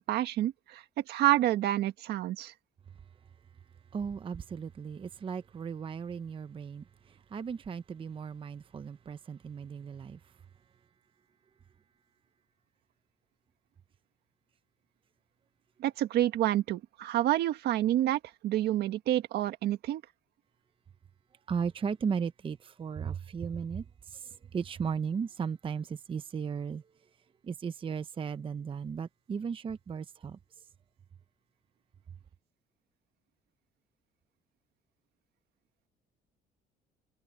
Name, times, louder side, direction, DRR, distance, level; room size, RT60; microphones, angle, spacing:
voice 1, 0.0-2.5 15.8-20.0, right 13 dB, 75° right, 1.8 m, -28 dB
voice 2, 3.9-10.2 21.5-26.8 27.4-30.4, right 6 dB, 30° right, 0.8 m, -36 dB
cardioid pair, 110°, 17 cm